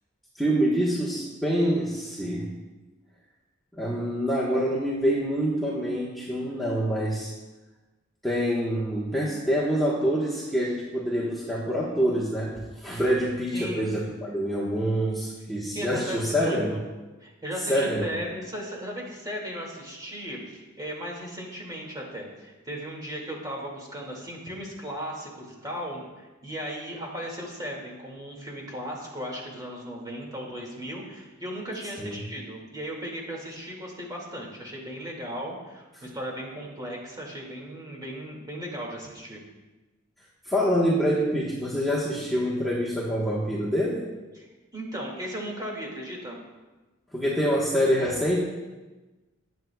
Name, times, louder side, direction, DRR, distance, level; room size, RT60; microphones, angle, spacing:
voice 1, 0.4-2.5 3.8-7.3 8.2-16.8 17.7-18.1 32.0-32.2 40.4-44.0 47.1-48.4, equal, ahead, -7 dB, 1.3 m, -26 dB
voice 2, 13.5-13.9 15.7-16.8 17.2-39.4 44.4-44.5 44.7-46.4, equal, 20° right, -2 dB, 2.3 m, -36 dB
19.0 x 7.9 x 2.4 m, 1.2 s
head